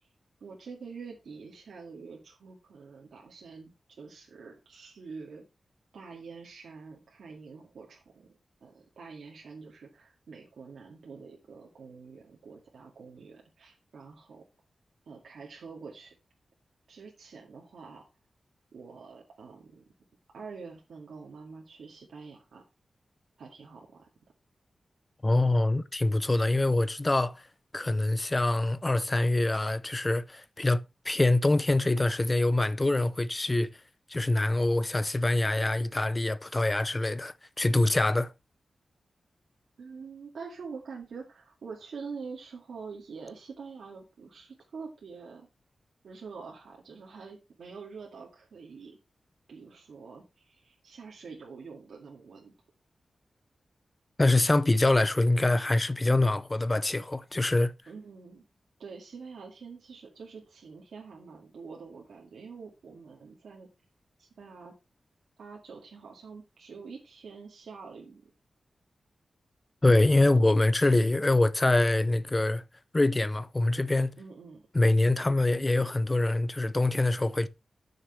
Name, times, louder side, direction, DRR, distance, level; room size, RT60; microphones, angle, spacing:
voice 1, 0.4-5.4 5.9-8.3 8.6-14.4 15.1-16.2 16.9-18.1 18.7-19.8 20.3-22.6 23.4-24.1 39.8-45.5 46.0-49.0 49.5-52.5 57.9-58.4 58.8-63.7 64.2-64.7 65.4-68.3 74.2-74.7, right 5 dB, 90° right, 2.1 m, -46 dB
voice 2, 25.2-27.4 27.7-30.8 31.0-33.7 34.1-38.3 54.2-57.7 69.8-72.6 72.9-74.2 74.7-77.5, left 2 dB, 20° left, 0.6 m, -25 dB
12.5 x 6.6 x 3.2 m
wide cardioid pair, 165°, 0 cm